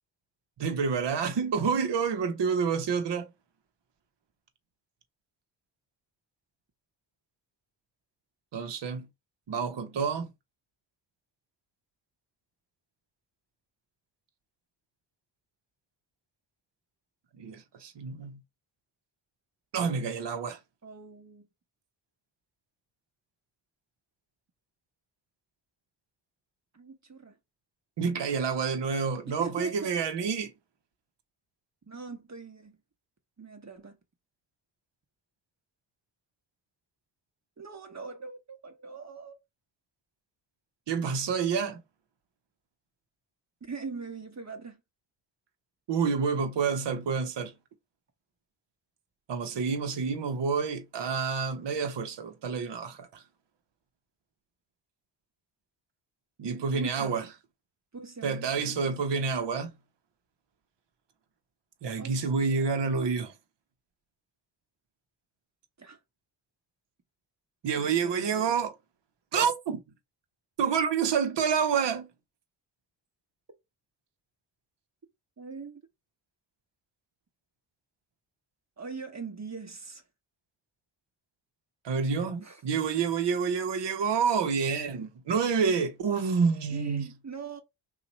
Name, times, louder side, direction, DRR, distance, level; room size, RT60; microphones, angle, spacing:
voice 1, 0.6-3.3 8.5-9.1 9.5-10.3 17.4-18.4 19.7-20.6 28.0-30.5 40.9-41.8 45.9-47.5 49.3-53.2 56.4-57.3 58.2-59.7 61.8-63.3 67.6-68.7 69.3-69.8 70.6-72.1 81.8-87.1, right 6 dB, 65° right, 0.9 m, -28 dB
voice 2, 20.8-21.5 26.7-27.4 29.3-29.9 31.9-32.8 33.4-34.0 37.6-39.4 43.6-44.8 56.7-57.1 57.9-58.9 62.0-62.9 65.8-66.0 67.8-68.5 75.4-75.8 78.8-80.0 82.4-82.6 86.7-87.6, right 5 dB, 35° right, 1.1 m, -42 dB
2.9 x 2.4 x 4.1 m
cardioid pair, 50°, 45 cm